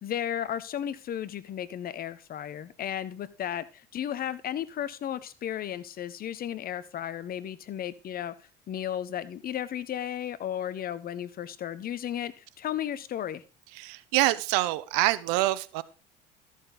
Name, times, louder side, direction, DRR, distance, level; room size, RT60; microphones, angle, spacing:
voice 1, 0.0-8.3 8.7-13.4, left 10 dB, 45° left, 16 dB, 1.0 m, -34 dB
voice 2, 13.7-15.8, right 17 dB, 75° right, 18 dB, 0.8 m, -26 dB
13.5 x 6.3 x 4.0 m, 0.35 s
hypercardioid pair, 75°, 21 cm